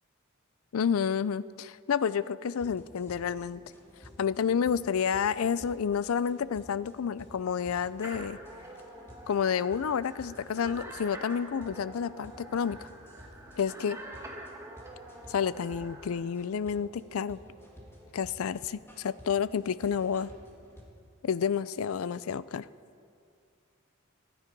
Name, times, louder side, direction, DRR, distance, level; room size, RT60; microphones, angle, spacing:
voice 1, 0.7-3.6 4.2-8.4 9.3-12.9 13.6-14.0 15.3-17.4 18.1-20.3 21.2-22.7, left 7 dB, 80° left, 17 dB, 0.4 m, -30 dB
sound 1, 2.4-20.8, equal, 10° left, 2.5 m, -53 dB
sound 2, 8.0-16.2, right 1 dB, 15° right, 1.8 m, -46 dB
25.5 x 10.0 x 5.3 m, 2.4 s
head